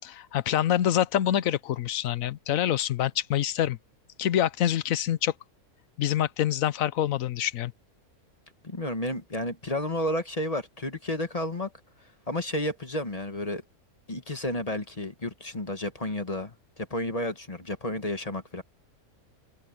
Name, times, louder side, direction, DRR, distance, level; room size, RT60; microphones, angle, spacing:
voice 1, 0.0-3.8 4.2-5.3 6.0-7.7, left 11 dB, 70° left, 1.1 m, -26 dB
voice 2, 8.6-11.7 12.3-13.6 14.1-18.6, left 1 dB, 25° left, 1.4 m, -31 dB
omnidirectional pair, 1.6 m